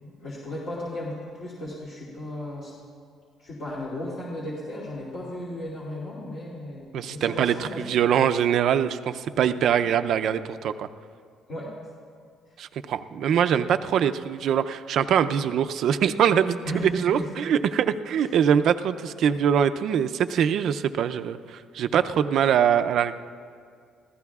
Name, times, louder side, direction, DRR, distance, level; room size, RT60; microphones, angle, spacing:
voice 1, 0.0-2.7 3.4-7.8 8.1-8.3 9.5-10.0 11.5-11.7 16.6-17.3, left 1 dB, 55° left, -6 dB, 2.7 m, -35 dB
voice 2, 6.9-10.9 12.6-23.1, right 8 dB, 65° right, 10 dB, 0.5 m, -23 dB
26.5 x 15.5 x 2.4 m, 2.2 s
cardioid pair, 125°, 0 cm